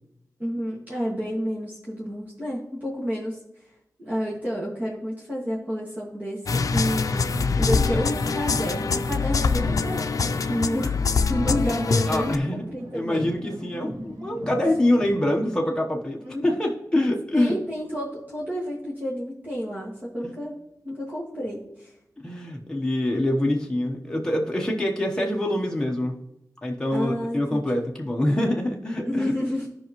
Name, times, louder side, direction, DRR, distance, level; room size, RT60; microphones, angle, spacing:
voice 1, 0.4-3.4 4.0-11.0 11.3-13.2 16.2-16.5 17.3-20.6 20.8-21.9 26.9-27.6 29.0-29.7, equal, 30° right, -6 dB, 1.9 m, -30 dB
sound 1, 6.5-12.4, left 4 dB, 65° left, 0.5 m, -24 dB
sound 2, 7.3-11.1 11.4-15.3, right 1 dB, 85° right, 1.8 m, -38 dB
voice 2, 12.1-12.6 12.9-17.6 20.2-20.3 22.2-26.1 26.6-29.3, left 1 dB, 10° left, -1 dB, 1.0 m, -25 dB
14.0 x 5.3 x 3.1 m, 0.85 s
wide cardioid pair, 95°, 6 cm